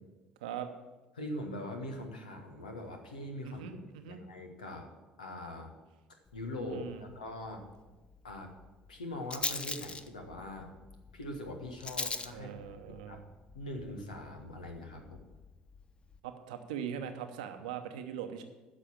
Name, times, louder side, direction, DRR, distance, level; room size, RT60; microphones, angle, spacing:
voice 1, 1.1-3.6 4.1-4.9 5.2-5.7 6.3-7.7 8.2-8.5 8.9-10.7 11.1-12.5 12.9-13.2 13.5-15.2, left 1 dB, 85° left, 3 dB, 1.4 m, -42 dB
voice 2, 3.4-4.2 6.7-7.0 12.3-13.2 16.2-18.4, right 8 dB, 75° right, 7 dB, 0.8 m, -41 dB
Rattle, 6.3-16.2, left 3 dB, 25° left, 0.7 m, -43 dB
10.5 x 6.7 x 7.5 m, 1.2 s
figure-of-eight pair, 55°, 4 cm